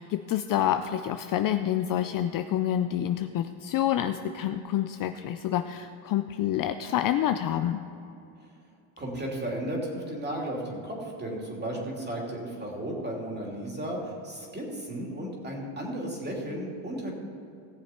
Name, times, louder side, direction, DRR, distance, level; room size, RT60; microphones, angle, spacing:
voice 1, 0.0-7.8, left 11 dB, 45° left, 9 dB, 0.5 m, -28 dB
voice 2, 9.0-17.1, right 1 dB, 20° right, -1 dB, 2.9 m, -34 dB
17.5 x 7.2 x 4.4 m, 2.7 s
supercardioid pair, 110°, 49 cm